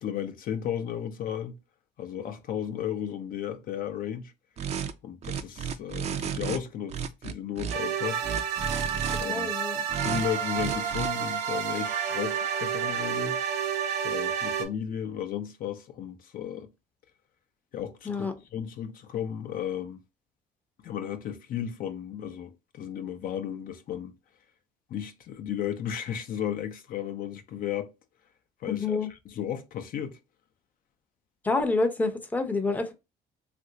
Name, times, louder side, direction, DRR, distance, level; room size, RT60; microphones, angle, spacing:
voice 1, 0.0-1.6 2.0-4.3 5.0-8.2 9.2-9.5 10.0-13.4 14.0-16.7 17.7-20.0 20.8-24.1 24.9-27.9 28.6-30.2, left 9 dB, 60° left, 0.5 m, -34 dB
sound 1, 4.6-4.9 5.2-6.6 6.9-7.8 8.2-9.2 9.9-10.2 10.6-11.1, right 7 dB, 40° right, 0.4 m, -32 dB
sound 2, 7.7-14.6, right 8 dB, 90° right, 0.7 m, -30 dB
voice 2, 9.2-9.8 18.1-18.3 28.7-29.1 31.4-32.9, left 3 dB, 10° left, 0.6 m, -28 dB
3.1 x 2.5 x 2.8 m
cardioid pair, 110°, 17 cm